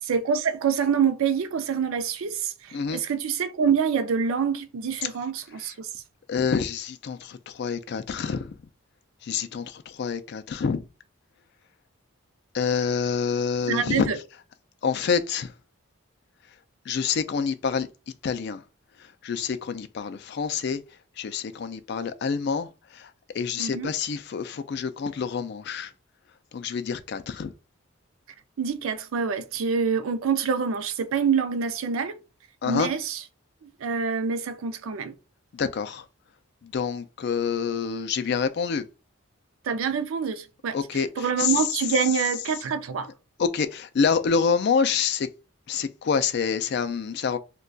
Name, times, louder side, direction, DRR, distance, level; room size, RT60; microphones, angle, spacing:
voice 1, 0.1-5.9 13.7-14.2 23.6-23.9 28.6-32.2 32.7-33.2 33.6-35.1 39.6-43.1, right 6 dB, 75° right, 0.4 m, -26 dB
voice 2, 6.3-8.6 9.2-10.8 12.5-14.1 14.8-15.5 16.9-17.9 18.2-18.6 19.2-20.8 21.2-22.7 22.9-23.1 23.3-25.9 26.5-27.5 32.6-32.9 35.5-36.0 36.6-38.9 40.7-41.1 41.4-41.5 43.4-45.3 45.7-47.4, left 6 dB, 50° left, 0.3 m, -27 dB
2.3 x 2.2 x 3.8 m
head